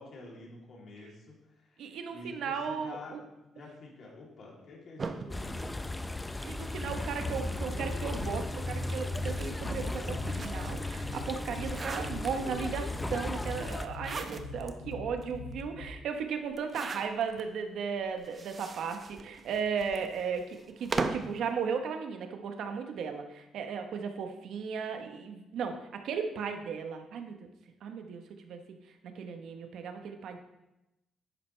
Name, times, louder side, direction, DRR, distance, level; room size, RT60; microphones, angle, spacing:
voice 1, 0.0-3.2 3.5-6.0 14.5-14.6, left 2 dB, 55° left, -3 dB, 2.9 m, -48 dB
voice 2, 1.8-3.2 6.4-27.5 27.8-28.6 29.0-30.4, right 6 dB, 75° right, 6 dB, 1.0 m, -36 dB
sound 1, 5.0-6.6 7.4-10.9 11.3-12.7 13.7-14.7 15.2-15.3 15.5-15.6 16.5-17.4 18.2-21.4, right 4 dB, 40° right, 0.8 m, -39 dB
sound 2, 5.3-13.9, left 2 dB, 15° left, 0.5 m, -36 dB
sound 3, 6.9-15.9, left 3 dB, 90° left, 1.4 m, -43 dB
10.5 x 7.8 x 3.3 m, 0.94 s
cardioid pair, 90°, 0 cm